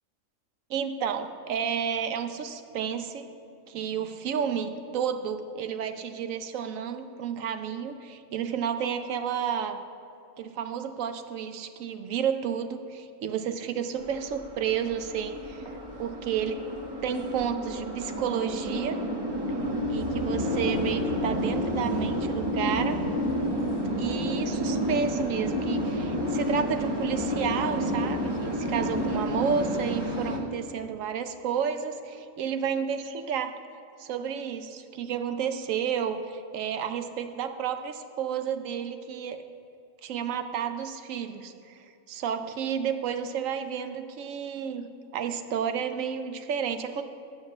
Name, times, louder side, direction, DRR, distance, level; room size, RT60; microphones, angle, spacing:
voice 1, 0.7-3.3 3.7-9.8 10.4-15.4 16.0-16.7 17.0-19.0 19.9-23.0 24.0-33.5 34.0-39.4 40.0-41.8 42.1-44.9 45.1-47.0, right 7 dB, 80° right, 9 dB, 1.0 m, -31 dB
sound 1, 14.0-30.4, equal, 20° right, 1.0 m, -30 dB
8.8 x 7.0 x 6.5 m, 2.6 s
omnidirectional pair, 1.4 m